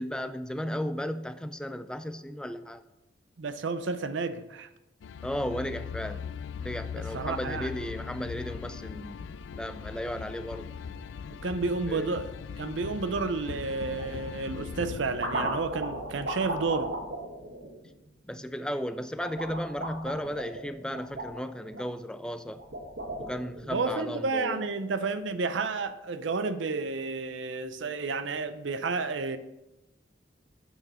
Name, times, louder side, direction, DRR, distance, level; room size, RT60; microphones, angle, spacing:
voice 1, 0.0-2.8 5.2-6.3 6.6-10.7 11.9-12.1 18.3-22.6 23.2-24.7, equal, 5° left, 0.3 m, -35 dB
voice 2, 3.4-4.7 7.1-7.7 11.4-17.0 23.7-29.4, right 4 dB, 85° right, 0.6 m, -31 dB
sound 1, 5.0-17.0, left 6 dB, 85° left, 0.3 m, -40 dB
sound 2, 13.9-14.1 14.8-18.4 19.2-21.9 22.5-23.8, right 1 dB, 70° right, 1.5 m, -36 dB
8.0 x 6.4 x 4.2 m
head